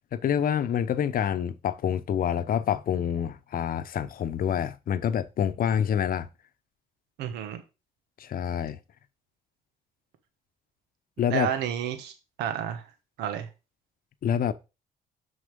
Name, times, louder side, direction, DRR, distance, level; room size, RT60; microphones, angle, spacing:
voice 1, 0.1-6.3 8.2-8.8 11.2-11.5 14.2-14.5, left 9 dB, 60° left, 0.8 m, -27 dB
voice 2, 7.2-7.6 11.3-12.1 12.4-12.8 13.2-13.5, right 10 dB, 90° right, 1.2 m, -30 dB
6.3 x 5.5 x 5.3 m
supercardioid pair, 75°, 17 cm